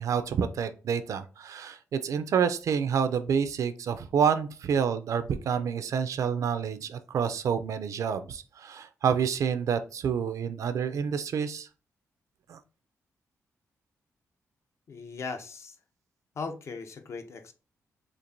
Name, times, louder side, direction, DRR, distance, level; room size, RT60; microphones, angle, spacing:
voice 1, 0.0-11.7 12.5-12.6, right 7 dB, 65° right, 0.4 m, -28 dB
voice 2, 14.9-15.8 16.4-17.5, left 4 dB, 50° left, 0.6 m, -38 dB
4.4 x 2.5 x 2.6 m
cardioid pair, 115°, 6 cm